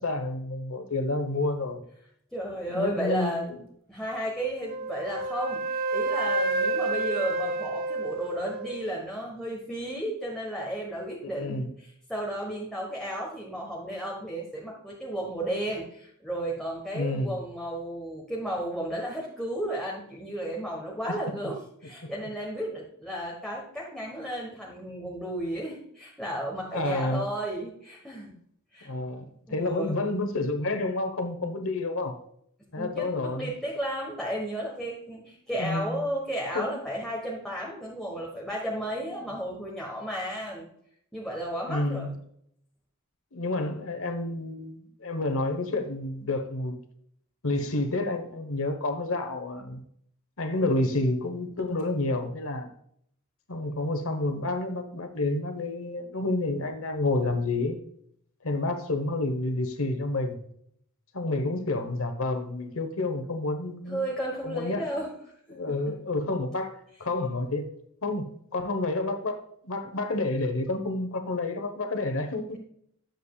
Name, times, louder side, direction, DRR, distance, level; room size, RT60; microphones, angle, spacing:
voice 1, 0.0-1.8 2.7-3.6 11.2-11.7 16.9-17.3 26.7-27.3 28.8-32.1 32.7-33.5 35.5-35.9 36.5-36.8 41.7-42.1 43.3-46.8 47.4-49.8 50.4-52.7 53.5-57.8 58.4-60.4 61.1-64.0 64.4-64.9 65.5-67.7 68.0-72.6, left 2 dB, 65° left, 6 dB, 1.2 m, -29 dB
voice 2, 2.3-3.5 3.9-28.4 28.7-28.9 29.5-29.9 32.8-40.7 41.1-42.1 63.9-65.1 65.5-65.9, right 1 dB, 5° left, -3 dB, 1.4 m, -33 dB
Wind instrument woodwind instrument, 4.7-8.9, right 3 dB, 45° right, 0.9 m, -29 dB
9.9 x 7.6 x 2.4 m, 0.68 s
head